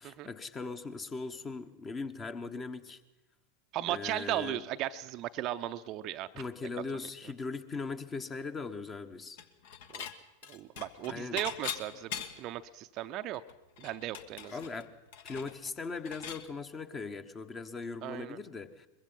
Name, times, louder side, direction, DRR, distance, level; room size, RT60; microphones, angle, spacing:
voice 1, 0.0-3.0 3.9-4.6 6.3-9.4 11.1-11.4 14.5-14.9 15.2-18.9, left 4 dB, 20° left, 10 dB, 1.3 m, -39 dB
voice 2, 3.7-6.3 7.0-7.1 9.9-10.1 10.5-13.4 13.8-14.6 18.0-18.4, right 13 dB, 35° right, 10 dB, 0.7 m, -36 dB
Dishes pots and pans / Chink clink, 9.4-10.1 10.4-12.5 13.0-13.1 13.3-16.4, left 7 dB, 55° left, 1.4 m, -42 dB
22.5 x 22.0 x 5.6 m, 1.0 s
figure-of-eight pair, 90°, 0 cm